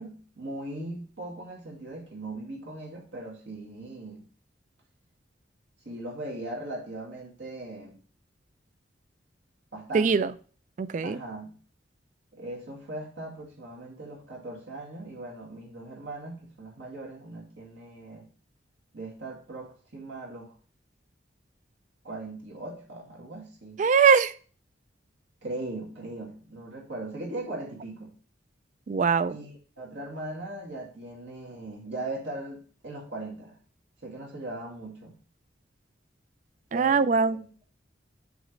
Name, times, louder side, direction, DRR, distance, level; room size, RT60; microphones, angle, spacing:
voice 1, 0.0-4.3 5.9-8.0 9.7-10.3 11.0-11.6 12.3-18.3 18.9-20.5 22.0-23.8 25.4-28.1 29.3-33.6 34.0-35.1 36.7-37.0 37.3-37.5, right 2 dB, 80° right, -2 dB, 2.1 m, -39 dB
voice 2, 9.9-10.3 10.8-11.2 23.8-24.3 28.9-29.3 36.7-37.3, right 5 dB, 40° right, 16 dB, 0.3 m, -21 dB
7.0 x 3.1 x 5.0 m, 0.41 s
head